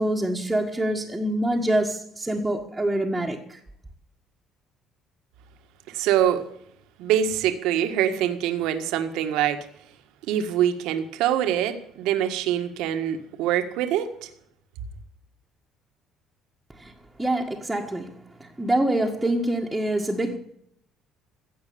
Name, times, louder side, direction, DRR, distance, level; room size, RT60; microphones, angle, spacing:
voice 1, 0.0-3.6 16.8-16.9 17.2-18.1 18.4-20.4, right 1 dB, 5° right, 1.7 m, -25 dB
voice 2, 5.9-6.4 7.0-9.6 10.3-14.3, right 10 dB, 85° right, 1.7 m, -24 dB
16.0 x 8.2 x 8.7 m
cardioid pair, 135°, 0 cm